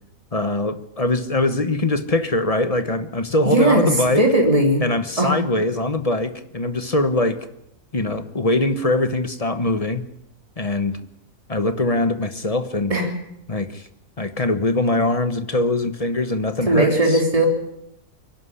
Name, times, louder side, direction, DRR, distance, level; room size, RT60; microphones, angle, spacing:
voice 1, 0.3-4.2 4.8-7.4 7.9-10.0 10.6-11.0 11.5-12.9 13.5-13.8 14.2-17.2, left 2 dB, 30° left, 10 dB, 1.1 m, -22 dB
voice 2, 3.4-4.8 5.2-5.3 12.9-13.1 16.7-17.5, right 1 dB, 25° right, 1 dB, 3.6 m, -18 dB
23.5 x 11.5 x 9.9 m, 0.80 s
omnidirectional pair, 1.5 m